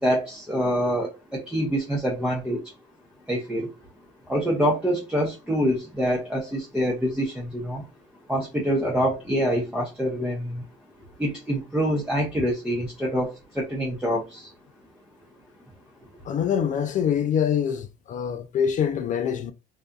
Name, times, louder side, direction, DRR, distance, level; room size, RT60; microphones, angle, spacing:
voice 1, 0.0-2.7 3.3-3.7 4.3-7.9 8.3-10.6 11.2-14.5, equal, 5° right, 0.7 m, -26 dB
voice 2, 16.3-19.5, left 8 dB, 50° left, 0.4 m, -25 dB
2.6 x 2.4 x 2.2 m
cardioid pair, 110°, 17 cm